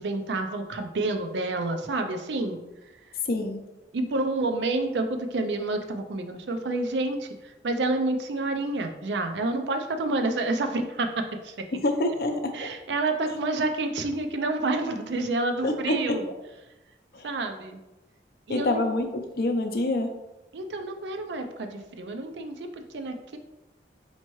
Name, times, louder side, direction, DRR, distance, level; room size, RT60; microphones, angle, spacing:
voice 1, 0.0-2.6 3.9-11.1 11.4-11.5 12.5-16.3 17.2-17.8 18.5-18.8 20.5-23.4, right 2 dB, 85° right, 6 dB, 0.5 m, -29 dB
voice 2, 3.2-3.6 11.7-12.7 15.6-16.2 17.1-17.3 18.5-20.1, left 1 dB, 55° left, 5 dB, 0.5 m, -26 dB
4.5 x 2.8 x 3.0 m, 0.99 s
head